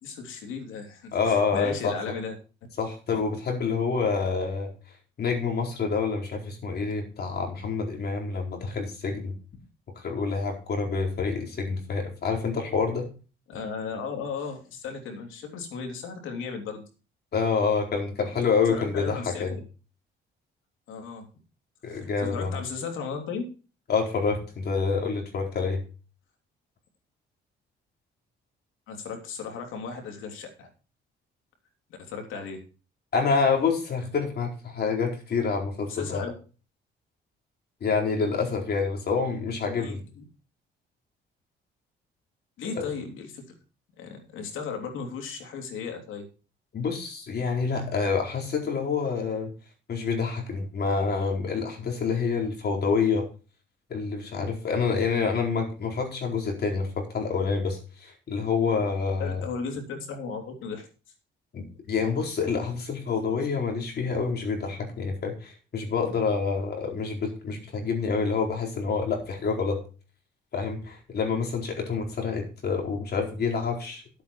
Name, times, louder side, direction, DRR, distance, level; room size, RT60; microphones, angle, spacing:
voice 1, 0.0-2.3 13.5-16.8 18.7-19.4 20.9-21.3 21.9-23.4 28.9-30.7 31.9-32.6 35.9-36.3 39.7-40.2 42.6-43.4 44.0-46.3 59.2-60.9, left 5 dB, 85° left, 4 dB, 3.0 m, -35 dB
voice 2, 1.1-1.9 2.8-4.7 5.2-9.3 10.0-13.1 17.3-19.5 21.8-22.6 23.9-25.8 33.1-36.2 37.8-40.0 42.7-42.9 46.7-49.5 49.9-53.3 53.9-59.4 61.5-69.8 70.5-74.0, left 5 dB, 55° left, 2 dB, 4.3 m, -27 dB
10.5 x 8.4 x 4.5 m, 0.35 s
cardioid pair, 90°, 20 cm